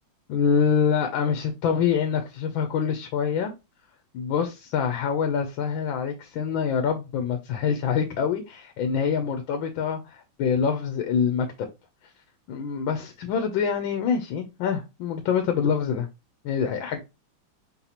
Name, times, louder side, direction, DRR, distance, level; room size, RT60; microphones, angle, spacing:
voice 1, 0.3-3.5 4.1-11.7 12.5-16.1 16.4-17.0, left 6 dB, 80° left, 1.5 m, -25 dB
4.1 x 4.1 x 2.9 m
omnidirectional pair, 2.2 m